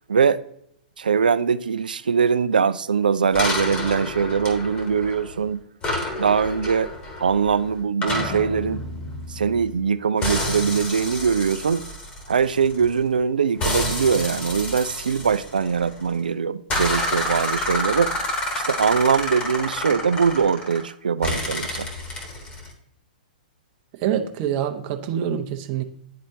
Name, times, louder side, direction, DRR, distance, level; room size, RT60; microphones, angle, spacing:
voice 1, 0.1-0.4 1.0-5.6 6.2-6.9 7.2-8.8 9.3-11.8 12.3-18.1 18.5-21.9, right 6 dB, 75° right, 0.4 m, -22 dB
sound 1, 3.4-5.4 5.8-9.8 10.2-13.0 13.6-16.1 16.7-20.9 21.2-22.7, left 1 dB, 25° left, 1.6 m, -29 dB
voice 2, 24.0-25.8, right 9 dB, 35° right, 0.8 m, -25 dB
10.0 x 4.2 x 2.7 m
figure-of-eight pair, 115°, 5 cm